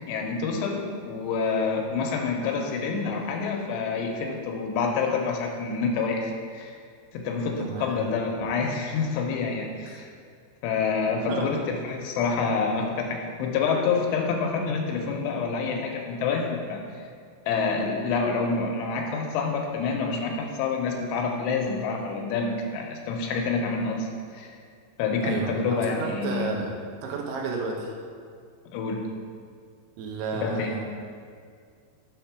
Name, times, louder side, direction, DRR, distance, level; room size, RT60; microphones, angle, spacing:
voice 1, 0.0-6.8 7.1-10.1 10.6-16.8 17.5-24.5 25.0-26.5 28.7-29.1 30.4-30.7, left 4 dB, 85° left, 1 dB, 2.8 m, -27 dB
voice 2, 7.6-8.1 9.8-10.0 11.3-11.5 25.2-26.7 27.0-27.9 30.0-30.9, right 4 dB, 80° right, 0 dB, 2.7 m, -32 dB
7.1 x 3.6 x 5.9 m, 2.2 s
omnidirectional pair, 5.1 m